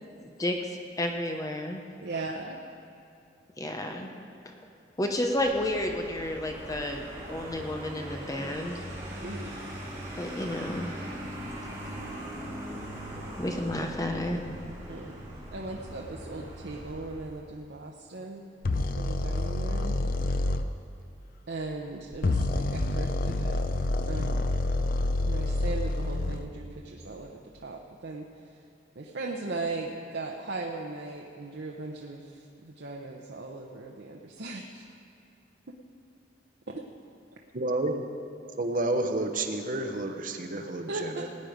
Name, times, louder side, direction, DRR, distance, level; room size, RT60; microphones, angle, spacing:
voice 1, 0.4-1.8 3.6-4.1 5.0-8.8 10.2-10.9 13.4-14.4, left 1 dB, 20° left, 3 dB, 0.8 m, -31 dB
voice 2, 2.0-2.6 9.2-9.6 14.9-15.2 15.5-18.4 19.0-20.0 21.5-23.6 24.1-24.6 25.2-28.6 28.9-34.8 36.7-36.8 40.9-41.3, right 3 dB, 65° right, 0 dB, 0.9 m, -38 dB
Vehicle, 5.2-17.4, equal, 15° right, 3.4 m, -40 dB
sound 1, 18.6-20.6 22.1-26.5, left 2 dB, 50° left, 0.6 m, -28 dB
voice 3, 37.5-38.0 38.6-41.3, right 2 dB, 50° right, 4 dB, 1.1 m, -30 dB
18.0 x 9.6 x 5.1 m, 2.7 s
head